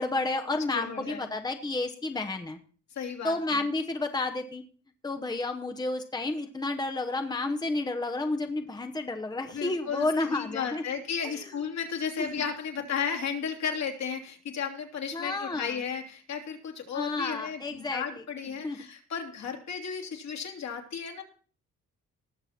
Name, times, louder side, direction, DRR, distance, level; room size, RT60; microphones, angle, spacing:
voice 1, 0.0-2.6 3.2-4.6 5.0-10.8 11.3-11.5 12.2-12.3 15.1-15.8 16.9-18.0 18.6-18.8, left 2 dB, 15° left, 6 dB, 1.1 m, -31 dB
voice 2, 0.7-1.3 2.9-3.6 9.5-21.2, left 6 dB, 65° left, 2 dB, 3.0 m, -34 dB
19.0 x 6.8 x 4.3 m, 0.40 s
cardioid pair, 90°, 30 cm